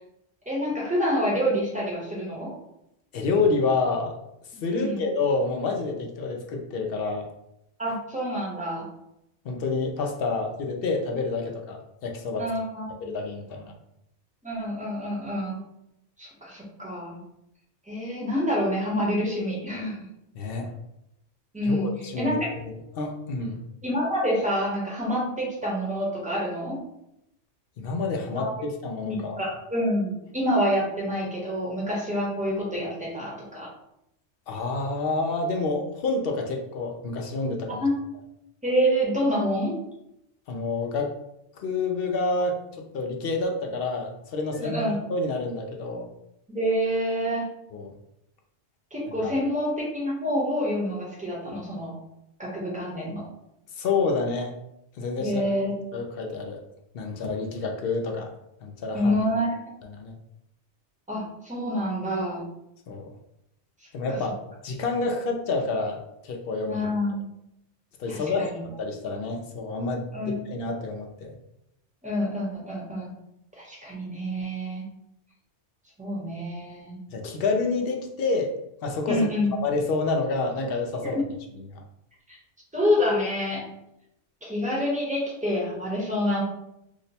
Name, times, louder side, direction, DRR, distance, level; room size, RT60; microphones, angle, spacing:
voice 1, 0.5-2.5 4.7-5.0 7.8-8.9 12.4-13.1 14.4-15.6 16.2-17.2 17.9-20.0 21.5-22.5 23.8-26.8 28.4-28.5 29.0-33.7 37.7-37.9 38.6-39.7 44.5-45.0 46.5-47.5 48.9-51.9 52.4-53.3 55.2-55.7 58.9-59.6 61.1-62.4 64.1-64.2 66.6-67.3 68.1-68.6 70.1-70.3 72.0-73.1 73.5-74.9 76.0-77.0 79.1-79.5 81.0-81.1 82.3-82.4 82.7-83.6 84.4-86.4, equal, 5° right, -4 dB, 0.8 m, -27 dB
voice 2, 3.1-4.1 4.6-7.3 9.4-12.5 13.0-13.7 20.3-20.7 21.6-22.4 22.6-23.6 27.8-29.5 34.5-37.8 40.5-41.1 41.6-42.6 42.9-46.1 47.7-47.9 53.8-54.5 55.0-55.4 55.9-56.6 56.9-58.3 58.6-59.1 59.9-60.2 62.9-63.1 63.9-64.3 64.6-66.0 66.2-66.9 68.0-71.3 77.1-78.5 78.8-79.3 79.6-81.2 81.7-81.8, left 3 dB, 65° left, 2 dB, 0.7 m, -28 dB
2.8 x 2.1 x 4.0 m, 0.82 s
omnidirectional pair, 1.2 m